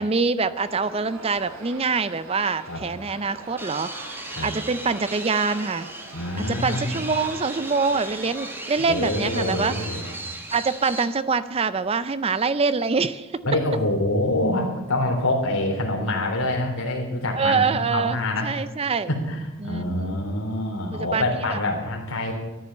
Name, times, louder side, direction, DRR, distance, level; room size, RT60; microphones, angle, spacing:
voice 1, 0.0-4.1 4.4-5.9 6.4-9.7 10.5-13.4 17.3-19.1 19.6-20.2 20.9-21.2 21.5-21.6, right 4 dB, 25° right, 14 dB, 0.5 m, -25 dB
sound 1, 0.5-10.1, right 2 dB, 75° right, 3.8 m, -42 dB
sound 2, 3.6-11.0, right 1 dB, 10° right, 1.5 m, -36 dB
voice 2, 6.1-7.0 8.9-10.1 13.4-18.5 19.1-22.3, left 1 dB, 75° left, 1 dB, 3.5 m, -26 dB
14.0 x 10.5 x 7.1 m, 1.2 s
head